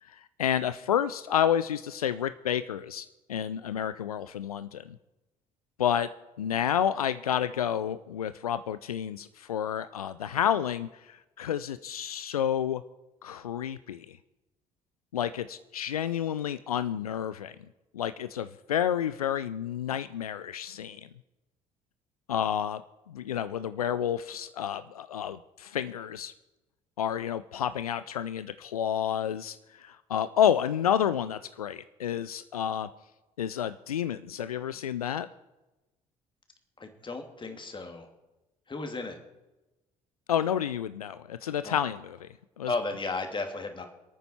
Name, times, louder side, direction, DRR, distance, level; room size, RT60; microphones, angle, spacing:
voice 1, 0.0-5.0 5.8-6.1 6.4-12.8 13.2-14.2 15.1-17.6 17.9-21.0 22.3-22.8 23.1-26.3 27.0-32.9 33.4-35.3 40.3-42.3 42.6-42.7, left 9 dB, 85° left, 14 dB, 0.4 m, -30 dB
voice 2, 36.8-38.1 38.7-39.2 41.6-41.8 42.7-43.9, left 3 dB, 25° left, 5 dB, 2.7 m, -34 dB
27.0 x 9.2 x 4.4 m, 1.0 s
figure-of-eight pair, 55°, 18 cm